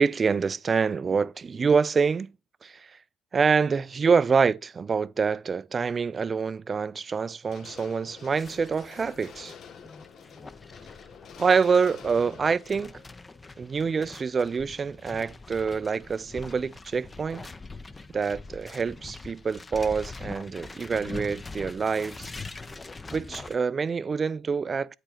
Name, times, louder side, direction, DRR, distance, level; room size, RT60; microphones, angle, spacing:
voice 1, 0.0-2.3 2.6-3.0 3.3-9.5 11.4-13.0 13.6-17.5 18.1-22.3 23.1-25.0, right 5 dB, 35° right, 0.3 m, -26 dB
sound 1, 7.5-14.6 14.9-15.0, left 7 dB, 55° left, 0.7 m, -49 dB
sound 2, 8.4-23.6, left 3 dB, 20° left, 0.5 m, -43 dB
8.7 x 4.6 x 4.3 m
supercardioid pair, 80°, 0 cm